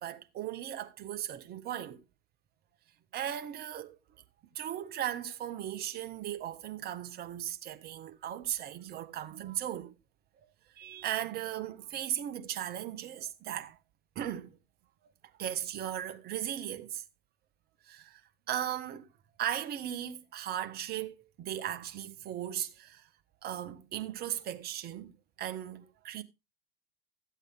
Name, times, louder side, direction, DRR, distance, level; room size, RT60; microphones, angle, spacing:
voice 1, 0.0-2.0 3.1-4.0 4.5-9.9 10.7-13.8 14.1-14.6 15.4-17.0 17.8-18.2 18.5-19.1 19.4-23.1 23.4-26.2, right 11 dB, 35° right, 1.5 m, -37 dB
13.5 x 8.2 x 3.7 m
hypercardioid pair, 100°, 29 cm